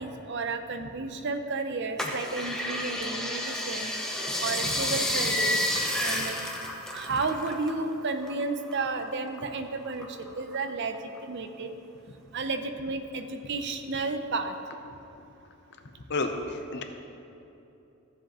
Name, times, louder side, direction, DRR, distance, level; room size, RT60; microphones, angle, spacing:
voice 1, 0.0-3.9 4.4-5.6 6.0-6.4 6.9-10.1 10.3-11.0 11.2-11.7 12.3-14.5, right 3 dB, 50° right, 7 dB, 0.6 m, -32 dB
sound 1, 2.0-7.8 8.1-9.4 9.8-10.7 11.2-11.3, left 1 dB, 5° left, 0.8 m, -30 dB
voice 2, 16.1-16.8, left 2 dB, 50° left, 5 dB, 0.7 m, -31 dB
15.0 x 7.5 x 3.0 m, 3.0 s
head